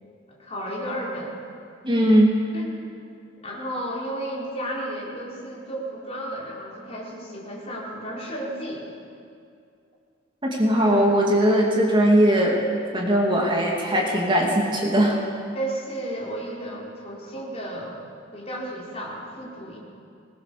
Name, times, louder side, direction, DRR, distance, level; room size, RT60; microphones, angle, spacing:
voice 1, 0.3-1.3 1.9-2.1 2.5-3.1 3.4-8.9 10.8-11.1 15.5-18.0 18.3-19.8, right 1 dB, 35° left, -4 dB, 4.3 m, -33 dB
voice 2, 1.8-2.4 10.4-12.6 12.9-15.2, equal, 25° right, -2 dB, 2.7 m, -19 dB
21.0 x 20.0 x 6.9 m, 2.3 s
head